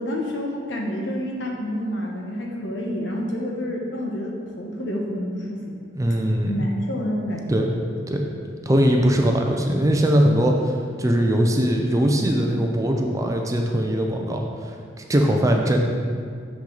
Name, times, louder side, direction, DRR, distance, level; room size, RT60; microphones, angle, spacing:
voice 1, 0.0-5.8 6.5-7.6, equal, 70° left, 0 dB, 1.1 m, -28 dB
voice 2, 6.0-6.5 7.5-7.7 8.1-8.2 8.7-14.5 15.1-15.8, equal, 15° right, 2 dB, 0.5 m, -20 dB
6.6 x 5.9 x 3.9 m, 2.1 s
head